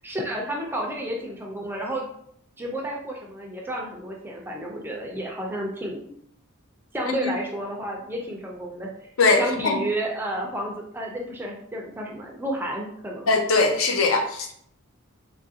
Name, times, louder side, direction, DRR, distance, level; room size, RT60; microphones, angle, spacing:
voice 1, 0.0-2.0 2.6-6.2 6.9-9.1 9.4-13.3, right 1 dB, 10° right, -1 dB, 0.4 m, -31 dB
voice 2, 13.3-14.5, left 3 dB, 65° left, 3 dB, 0.5 m, -20 dB
2.9 x 2.4 x 2.7 m, 0.68 s
head